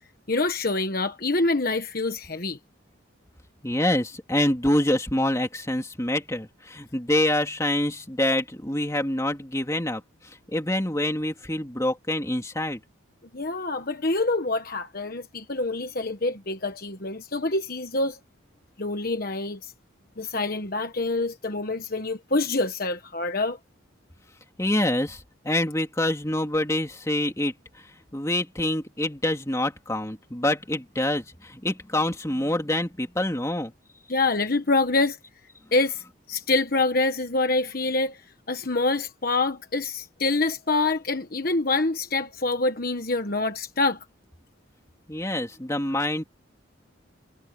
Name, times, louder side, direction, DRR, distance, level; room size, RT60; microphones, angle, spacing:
voice 1, 0.3-2.6 13.3-18.2 18.8-19.7 20.2-23.6 34.1-35.2 35.7-38.2 38.5-44.0, left 3 dB, 45° left, 1.3 m, -26 dB
voice 2, 3.6-12.8 24.6-27.9 28.1-33.7 45.1-46.2, left 1 dB, 15° left, 2.9 m, -26 dB
head